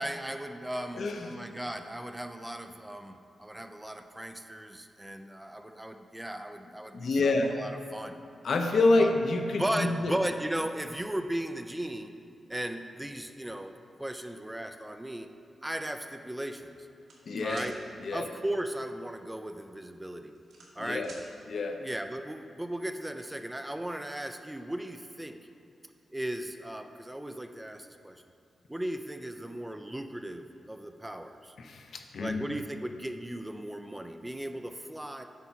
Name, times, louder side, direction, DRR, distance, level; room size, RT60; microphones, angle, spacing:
voice 1, 0.0-8.2 9.0-9.1 9.6-12.1 12.5-15.3 15.6-16.7 17.4-17.8 18.1-20.3 20.8-21.0 21.8-25.4 26.1-28.2 28.7-31.5 32.2-35.2, right 1 dB, 10° right, 7 dB, 0.3 m, -36 dB
voice 2, 0.9-1.3 6.9-7.5 8.4-10.1 17.3-17.7 18.0-18.3 20.8-21.1 21.5-21.8 31.6-32.4, left 2 dB, 55° left, 5 dB, 0.7 m, -27 dB
sound 1, 17.1-17.7 19.4-19.6 20.0-21.2, right 3 dB, 85° right, 1.6 m, -50 dB
8.1 x 4.5 x 5.8 m, 2.5 s
wide cardioid pair, 160°, 0 cm